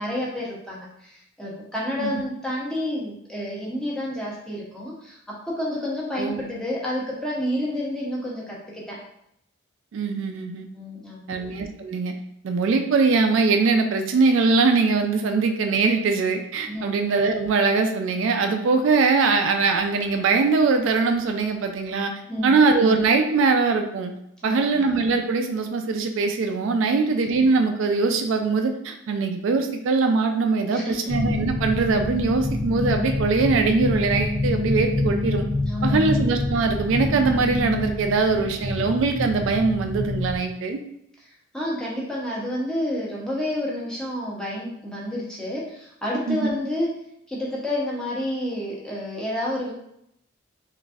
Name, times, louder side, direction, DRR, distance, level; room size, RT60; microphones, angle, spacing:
voice 1, 0.0-9.0 10.7-11.3 16.7-17.0 22.3-22.6 24.4-24.9 26.9-27.1 30.7-31.1 35.7-36.1 41.2-47.0 47.3-49.7, left 1 dB, 5° left, -5 dB, 0.7 m, -30 dB
voice 2, 9.9-10.7 11.3-12.1 12.4-22.1 22.4-24.1 24.4-35.4 35.8-40.8 46.3-46.5, right 4 dB, 70° right, 5 dB, 0.3 m, -22 dB
sound 1, 31.1-40.4, left 2 dB, 35° left, 1.2 m, -26 dB
3.9 x 2.5 x 2.4 m, 0.76 s
head